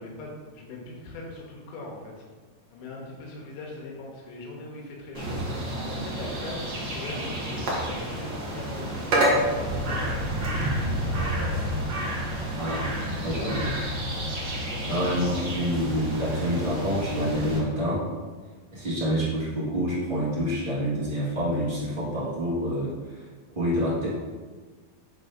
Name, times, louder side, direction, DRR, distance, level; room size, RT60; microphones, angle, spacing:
voice 1, 0.0-2.2 2.7-5.4 5.8-7.5 7.8-11.7 12.8-13.7 14.7-15.0, left 2 dB, 85° left, -2 dB, 2.9 m, -41 dB
sound 1, 5.1-17.6, right 1 dB, 85° right, 1.0 m, -29 dB
voice 2, 12.5-12.9 13.2-13.7 14.9-18.1 18.7-23.2 23.5-24.1, equal, 35° right, -9 dB, 0.8 m, -27 dB
6.6 x 6.5 x 2.7 m, 1.4 s
omnidirectional pair, 4.3 m